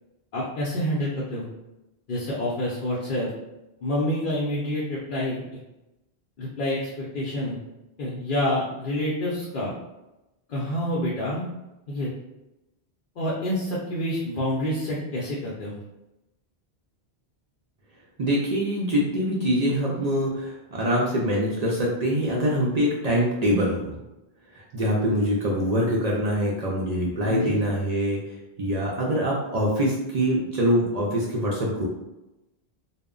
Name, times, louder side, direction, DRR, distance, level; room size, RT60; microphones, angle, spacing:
voice 1, 0.3-1.5 2.1-3.3 3.8-5.4 6.4-7.6 8.0-9.7 10.5-11.5 11.9-12.1 13.2-15.8 27.3-27.6, left 1 dB, 60° left, -6 dB, 0.7 m, -27 dB
voice 2, 18.2-23.9 24.5-28.2 28.6-31.8, equal, 55° right, -4 dB, 0.4 m, -24 dB
2.1 x 2.0 x 3.6 m, 0.96 s
omnidirectional pair, 1.1 m